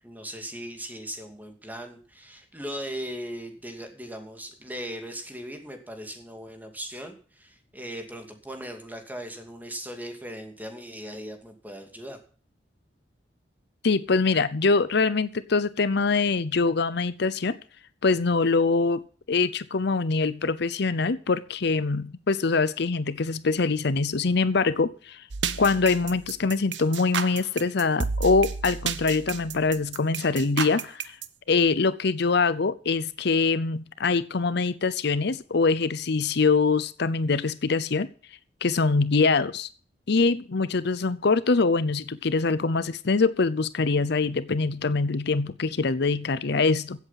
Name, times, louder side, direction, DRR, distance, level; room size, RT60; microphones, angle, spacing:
voice 1, 0.0-12.2, equal, 10° right, 5 dB, 2.5 m, -38 dB
voice 2, 13.8-17.6 18.0-19.0 19.3-25.3 25.6-31.2 31.5-38.1 38.6-39.7 40.1-47.1, left 4 dB, 65° left, 15 dB, 0.7 m, -24 dB
sound 1, 25.3-31.3, right 6 dB, 75° right, 1.0 m, -31 dB
15.5 x 8.1 x 5.8 m, 0.41 s
head